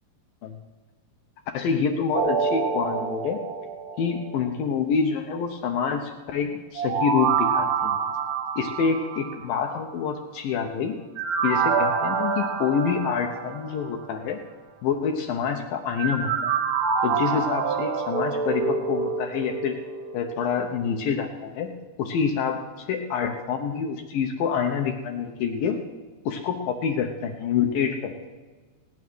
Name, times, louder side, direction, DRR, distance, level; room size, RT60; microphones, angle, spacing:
voice 1, 1.5-3.4 4.0-8.0 8.6-11.0 11.4-14.4 14.8-16.5 17.0-19.8 20.1-25.8 26.3-28.3, left 6 dB, 75° left, 4 dB, 2.2 m, -27 dB
sound 1, 2.1-4.4 6.7-9.7 11.2-13.9 16.0-20.4 20.8-20.9, right 5 dB, 65° right, 2.1 m, -27 dB
18.0 x 9.8 x 6.1 m, 1.3 s
omnidirectional pair, 4.9 m